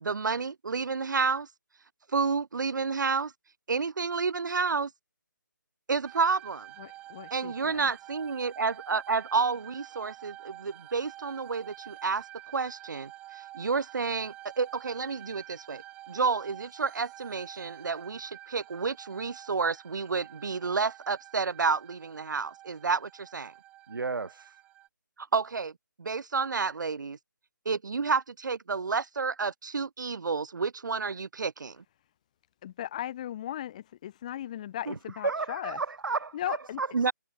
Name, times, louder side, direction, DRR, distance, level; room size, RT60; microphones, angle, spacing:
voice 1, 0.0-1.5 2.1-3.3 3.7-4.9 5.9-6.7 7.3-12.2 12.5-23.5 25.2-25.7 26.0-27.2 27.6-31.8 36.9-37.1, right 5 dB, 65° right, 1.5 m, -30 dB
sound 1, 6.0-24.9, right 15 dB, 10° right, 4.9 m, -49 dB
voice 2, 6.8-7.9 32.6-35.8 36.3-36.8, left 12 dB, 20° left, 0.6 m, -37 dB
voice 3, 23.9-24.5 34.9-35.0 35.2-37.1, right 4 dB, 85° right, 1.4 m, -33 dB
hypercardioid pair, 165°, 11 cm